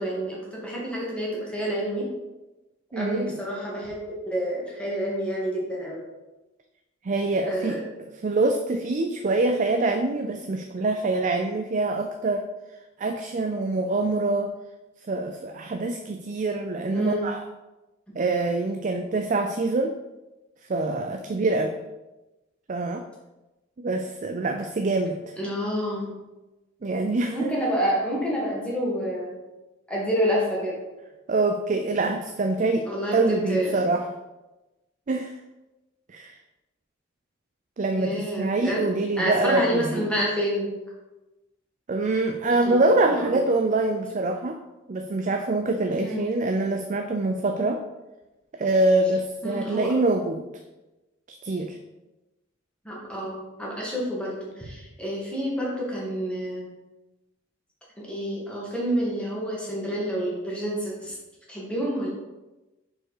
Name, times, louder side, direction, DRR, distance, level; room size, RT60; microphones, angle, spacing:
voice 1, 0.0-2.1 2.9-4.0 4.3-6.0 7.5-7.8 16.9-17.2 25.4-26.2 27.3-29.4 29.9-30.8 32.9-33.8 37.9-38.8 39.2-40.8 42.6-43.4 46.0-46.3 49.4-49.9 52.9-56.7 58.0-61.2 61.5-62.1, equal, 5° left, -4 dB, 1.9 m, -28 dB
voice 2, 2.9-3.4 7.0-7.8 8.2-12.4 13.0-14.5 15.1-17.5 18.2-19.9 20.7-21.8 22.7-23.1 23.8-25.2 26.8-27.5 31.3-32.8 33.1-34.1 35.1-35.3 36.1-36.3 37.8-40.1 41.9-44.6 44.9-47.8 48.6-50.5 51.3-51.8, right 2 dB, 40° right, 5 dB, 0.4 m, -25 dB
6.3 x 4.5 x 4.8 m, 1.1 s
head